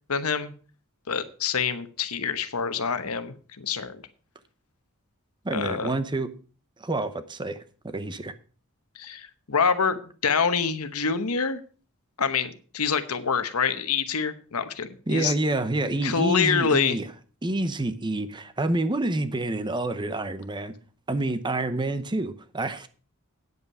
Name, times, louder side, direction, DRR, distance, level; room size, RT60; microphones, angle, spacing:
voice 1, 0.1-0.5 1.1-4.0 5.5-5.9 9.0-11.6 12.2-15.3 16.0-17.0, left 6 dB, 85° left, 1.0 m, -26 dB
voice 2, 5.4-6.3 6.8-8.3 15.1-17.1 17.4-20.7 21.1-22.9, right 2 dB, 20° right, 0.8 m, -28 dB
9.4 x 8.3 x 5.5 m
head